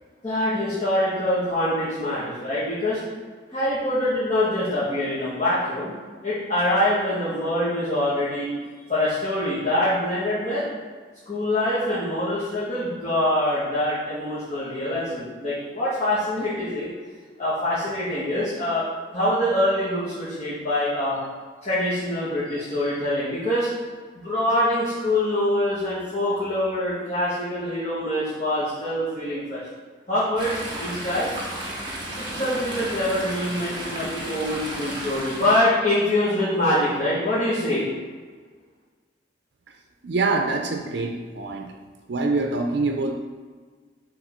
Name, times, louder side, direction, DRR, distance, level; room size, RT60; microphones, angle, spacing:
voice 1, 0.2-3.0 3.5-5.9 6.2-8.5 8.9-10.6 11.3-16.9 17.4-18.8 19.1-21.2 21.6-23.7 24.1-29.6 30.1-31.3 32.2-37.9, left 1 dB, 35° left, -11 dB, 1.5 m, -24 dB
Chatter / Stream, 30.4-35.6, right 1 dB, 25° right, 1.3 m, -33 dB
voice 2, 40.0-41.7 42.1-43.1, right 3 dB, 65° right, 3 dB, 0.5 m, -25 dB
5.1 x 3.8 x 5.0 m, 1.5 s
head